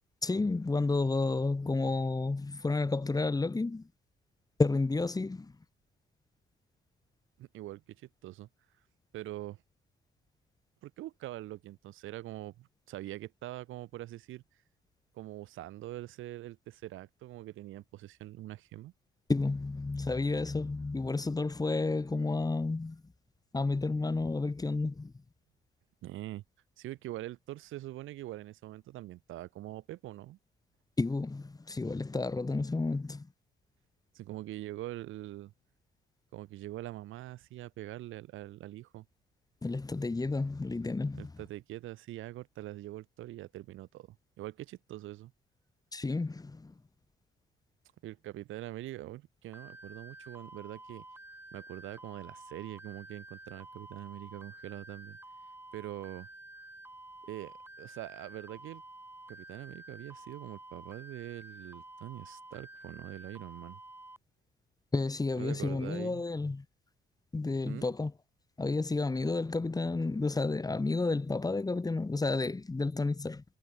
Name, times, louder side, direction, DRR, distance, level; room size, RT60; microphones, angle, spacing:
voice 1, 0.2-3.9 4.6-5.5 19.3-23.0 23.5-25.1 31.0-33.3 39.6-41.3 45.9-46.7 64.9-66.6 67.3-68.1 68.6-73.4, left 3 dB, 20° left, 1.5 m, -31 dB
voice 2, 7.4-8.5 9.1-9.6 10.8-14.4 15.1-18.9 24.0-24.1 26.0-26.4 26.8-30.4 34.1-35.5 36.3-39.1 41.1-45.3 48.0-51.0 51.5-55.2 55.7-56.3 57.2-58.8 59.3-63.8 65.4-66.2 67.6-67.9, right 15 dB, 85° right, 1.0 m, -43 dB
sound 1, 49.5-64.2, right 1 dB, 10° right, 4.3 m, -50 dB
cardioid pair, 90°, 20 cm